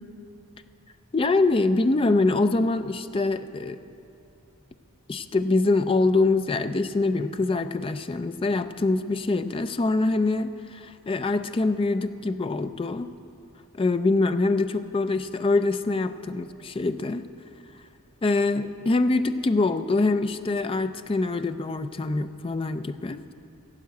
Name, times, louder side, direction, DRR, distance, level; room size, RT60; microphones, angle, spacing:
voice 1, 1.1-3.8 5.1-13.1 13.8-17.2 18.2-23.3, left 3 dB, 25° left, 10 dB, 0.4 m, -24 dB
15.0 x 7.6 x 8.1 m, 2.7 s
head